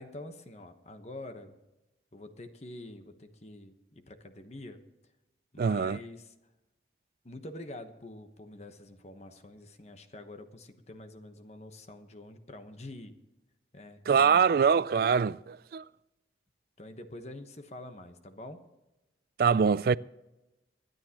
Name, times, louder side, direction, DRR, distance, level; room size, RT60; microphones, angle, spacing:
voice 1, 0.0-1.6 2.1-4.8 5.5-6.3 7.2-13.2 13.7-14.4 16.8-18.6, left 1 dB, 40° left, 1.1 m, -46 dB
voice 2, 5.6-6.0 14.1-15.8 19.4-20.0, right 6 dB, 55° right, 0.3 m, -24 dB
25.5 x 10.5 x 2.9 m
head